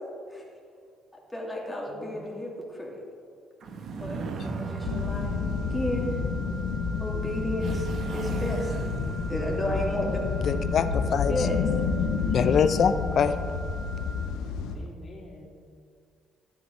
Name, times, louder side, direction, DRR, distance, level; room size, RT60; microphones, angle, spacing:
voice 1, 1.3-3.0 4.0-6.2 7.0-8.7 9.3-10.2 11.3-11.6, left 1 dB, 10° left, -2 dB, 2.4 m, -32 dB
voice 2, 1.9-2.5 14.7-15.5, left 1 dB, 35° left, -4 dB, 2.9 m, -47 dB
sound 1, 3.6-6.7 7.6-10.3, right 4 dB, 60° right, 0.9 m, -36 dB
sound 2, 4.3-14.3, right 2 dB, 85° right, 1.9 m, -45 dB
sound 3, 4.8-14.7, left 5 dB, 85° left, 0.9 m, -29 dB
voice 3, 10.4-11.5 12.3-13.3, left 7 dB, 55° left, 12 dB, 0.5 m, -24 dB
12.5 x 9.5 x 3.2 m, 2.2 s
supercardioid pair, 75°, 0 cm